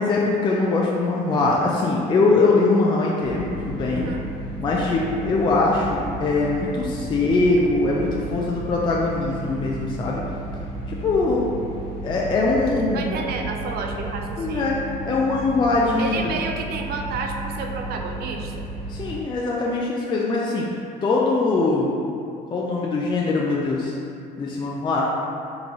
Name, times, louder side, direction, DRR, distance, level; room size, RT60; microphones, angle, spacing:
voice 1, 0.0-4.0 4.6-10.2 10.9-11.5 12.0-13.1 14.4-16.3 18.9-20.7 21.0-21.9 22.5-23.9 24.4-25.1, left 3 dB, 30° left, -3 dB, 0.3 m, -22 dB
sound 1, 3.2-19.2, right 1 dB, 65° left, 1.1 m, -33 dB
voice 2, 3.9-4.3 12.9-14.8 16.0-18.7, right 4 dB, 70° right, 3 dB, 0.4 m, -31 dB
3.8 x 2.5 x 3.0 m, 2.5 s
cardioid pair, 110°, 17 cm